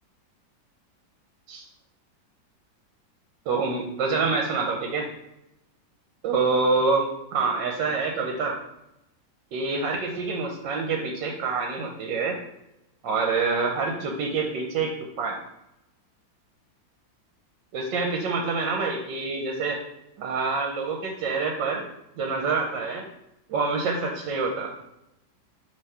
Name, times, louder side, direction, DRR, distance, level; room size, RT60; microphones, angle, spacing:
voice 1, 3.5-5.1 6.2-8.6 9.5-12.4 13.0-15.4 17.7-19.8 20.2-21.8 22.2-23.1 23.5-24.7, right 4 dB, 75° right, 2 dB, 1.4 m, -26 dB
5.6 x 3.2 x 5.5 m, 0.86 s
omnidirectional pair, 2.1 m